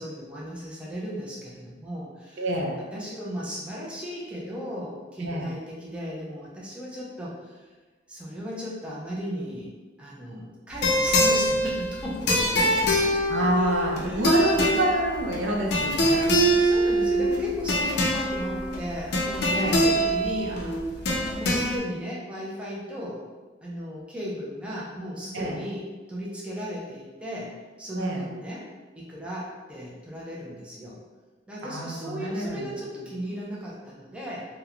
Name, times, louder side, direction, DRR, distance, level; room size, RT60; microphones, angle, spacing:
voice 1, 0.0-2.4 2.9-7.7 8.1-9.7 10.0-13.1 13.6-14.3 16.5-21.0 21.3-23.2 23.6-27.5 27.8-28.7 29.0-31.0 31.5-34.5, equal, 5° right, -5 dB, 0.4 m, -36 dB
voice 2, 2.4-2.8 5.2-5.5 13.3-16.3 19.5-19.9 25.3-25.6 27.9-28.3 31.6-32.7, right 1 dB, 70° right, -2 dB, 0.5 m, -27 dB
sound 1, 10.7-21.8, equal, 60° left, 0.4 m, -24 dB
2.9 x 2.0 x 2.4 m, 1.3 s
head